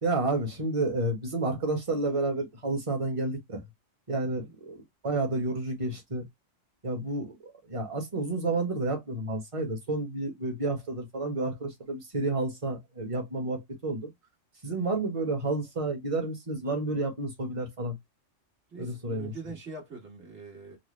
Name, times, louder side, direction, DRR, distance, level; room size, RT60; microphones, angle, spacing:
voice 1, 0.0-3.6 4.1-6.2 6.8-14.1 14.6-18.0 18.8-19.3, right 2 dB, 30° right, 1.1 m, -30 dB
voice 2, 18.7-20.8, right 4 dB, 65° right, 1.9 m, -43 dB
4.2 x 2.1 x 3.1 m
omnidirectional pair, 1.3 m